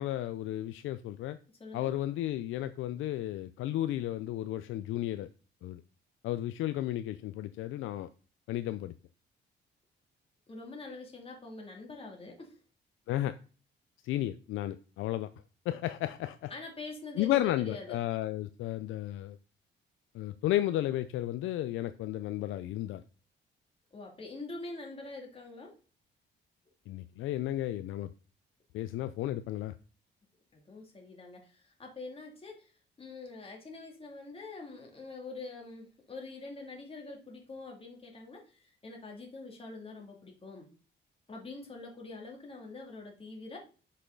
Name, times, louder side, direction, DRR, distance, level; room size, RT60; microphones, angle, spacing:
voice 1, 0.0-1.4 1.7-5.3 5.6-5.8 6.2-8.1 8.5-8.9 13.1-13.3 14.0-15.3 15.7-16.5 17.2-19.4 20.1-23.0 26.9-28.1 28.7-29.7, left 14 dB, 85° left, 0.4 m, -33 dB
voice 2, 1.6-1.9 10.5-12.6 16.5-18.0 23.9-25.7 30.5-32.7 33.0-40.7 41.3-43.6, left 3 dB, 30° left, 2.4 m, -45 dB
6.0 x 5.6 x 3.8 m
cardioid pair, 90°, 20 cm